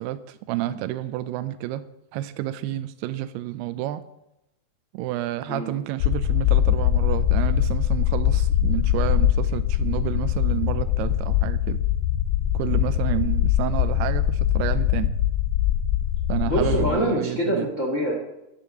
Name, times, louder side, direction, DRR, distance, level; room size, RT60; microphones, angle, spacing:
voice 1, 0.0-1.8 2.1-4.0 4.9-11.8 12.5-15.1 16.3-17.7, right 13 dB, 90° right, 11 dB, 2.6 m, -30 dB
sound 1, 6.0-16.9, left 11 dB, 85° left, 2.0 m, -22 dB
voice 2, 16.4-18.1, equal, 35° left, -1 dB, 1.3 m, -25 dB
11.0 x 8.4 x 6.6 m, 0.89 s
omnidirectional pair, 4.6 m